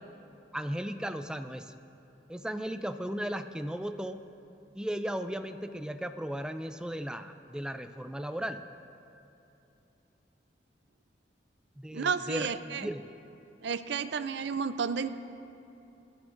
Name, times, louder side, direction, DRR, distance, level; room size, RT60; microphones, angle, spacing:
voice 1, 0.5-1.7 2.3-4.2 4.7-8.6 11.8-13.0, equal, 5° right, 8 dB, 0.3 m, -36 dB
voice 2, 11.9-12.9 13.6-15.1, right 6 dB, 70° right, 12 dB, 0.5 m, -31 dB
21.0 x 12.0 x 2.6 m, 2.9 s
head